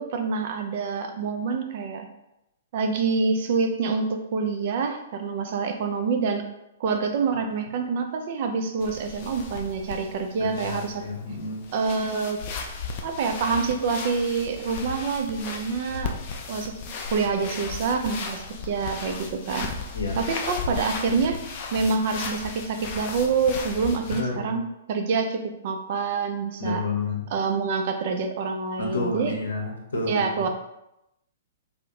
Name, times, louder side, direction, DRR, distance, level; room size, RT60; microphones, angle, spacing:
voice 1, 0.0-2.1 2.7-6.4 6.8-11.0 11.7-12.4 13.0-16.1 16.5-19.7 20.2-21.4 21.7-26.8 27.3-29.3 30.1-30.5, right 5 dB, 50° right, 5 dB, 0.3 m, -26 dB
sound 1, 8.8-24.2, left 4 dB, 40° left, 0.3 m, -36 dB
voice 2, 10.4-11.7 19.9-20.2 24.1-24.6 26.6-27.2 28.8-30.5, left 3 dB, 70° left, -1 dB, 0.7 m, -30 dB
2.4 x 2.0 x 2.9 m, 0.86 s
figure-of-eight pair, 115°, 0 cm